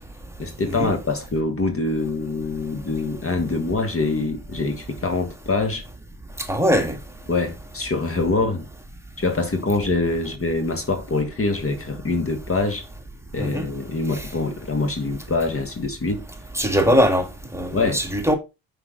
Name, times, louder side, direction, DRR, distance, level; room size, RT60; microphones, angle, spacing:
voice 1, 0.4-5.8 7.3-8.7 9.2-12.8 13.3-16.3 17.7-18.0, left 3 dB, 35° left, 1.6 m, -24 dB
voice 2, 6.4-6.9 13.4-13.7 16.5-17.3 17.5-18.4, equal, 5° right, 1.8 m, -20 dB
5.9 x 5.5 x 3.8 m
supercardioid pair, 60°, 39 cm